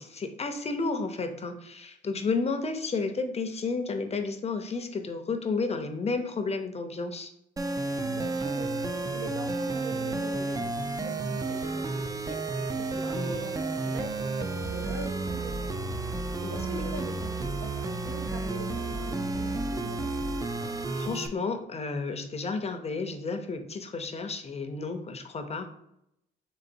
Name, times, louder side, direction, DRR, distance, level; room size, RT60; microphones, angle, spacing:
voice 1, 0.0-7.3 13.1-13.5 16.4-17.0 20.9-25.7, left 4 dB, 30° left, 6 dB, 0.5 m, -32 dB
sound 1, 7.6-21.3, right 3 dB, 20° right, 0.3 m, -31 dB
voice 2, 8.0-8.7 9.1-12.4 12.7-15.9 16.5-20.0, right 2 dB, 85° right, 3 dB, 0.8 m, -42 dB
3.8 x 3.7 x 2.6 m, 0.78 s
cardioid pair, 90°, 20 cm